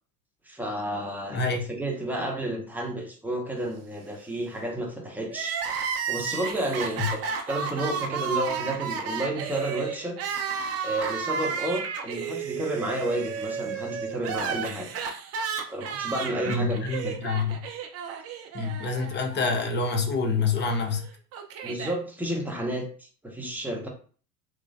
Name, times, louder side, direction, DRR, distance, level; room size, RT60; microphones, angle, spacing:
voice 1, 0.5-5.6 6.1-7.2 7.5-10.2 10.8-14.9 15.7-17.2 21.6-23.9, right 1 dB, 5° right, 0.9 m, -31 dB
voice 2, 1.3-1.7 7.0-7.1 16.5-17.6 18.5-21.1, left 4 dB, 25° left, 0.7 m, -27 dB
Crying sobbing, 5.3-19.5 19.7-19.8 20.8-22.0, right 6 dB, 35° right, 0.6 m, -32 dB
3.1 x 3.1 x 2.5 m
figure-of-eight pair, 75°, 46 cm